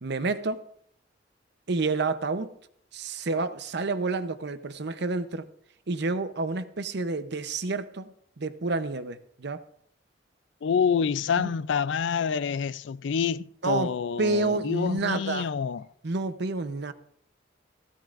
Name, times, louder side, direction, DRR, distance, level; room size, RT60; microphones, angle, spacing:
voice 1, 0.0-0.7 1.7-2.5 2.9-5.5 5.9-9.6 11.4-11.5 13.6-15.5 16.0-16.9, right 3 dB, 65° right, 0.8 m, -29 dB
voice 2, 10.6-15.9, left 6 dB, 70° left, 0.4 m, -27 dB
15.0 x 15.0 x 2.5 m
head